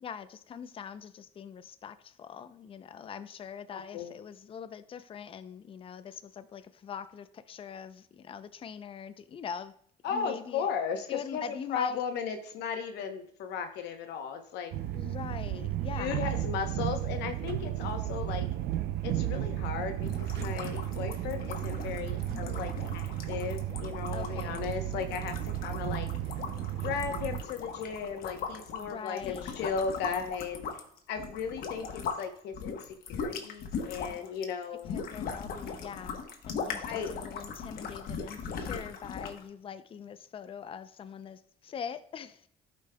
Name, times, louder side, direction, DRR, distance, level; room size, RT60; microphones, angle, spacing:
voice 1, 0.0-9.7 10.1-10.7 11.1-12.0 14.9-16.5 24.1-24.6 28.8-29.7 34.9-42.5, left 7 dB, 35° left, 0.5 m, -43 dB
voice 2, 3.7-4.1 10.0-14.8 16.0-18.5 19.0-25.3 25.6-26.1 26.8-30.6 31.1-34.9 36.8-37.2, left 6 dB, 85° left, 0.8 m, -36 dB
sound 1, 14.7-27.4, right 13 dB, 75° right, 0.5 m, -34 dB
sound 2, 20.0-32.2 32.5-39.4, left 5 dB, 65° left, 1.1 m, -39 dB
11.5 x 5.3 x 2.2 m
cardioid pair, 110°, 17 cm